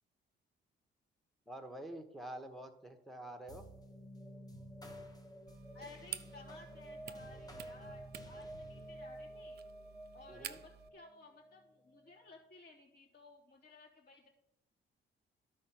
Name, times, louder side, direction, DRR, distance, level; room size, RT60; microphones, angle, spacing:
voice 1, 1.5-3.7 10.3-10.6, right 1 dB, ahead, 5 dB, 1.3 m, -47 dB
sound 1, 3.5-12.2, right 1 dB, 20° left, 1.5 m, -51 dB
sound 2, 5.5-10.9, right 10 dB, 55° right, 0.6 m, -51 dB
voice 2, 5.7-9.6 10.1-14.3, left 3 dB, 55° left, -3 dB, 3.4 m, -57 dB
12.0 x 4.5 x 6.1 m, 0.84 s
cardioid pair, 90°, 20 cm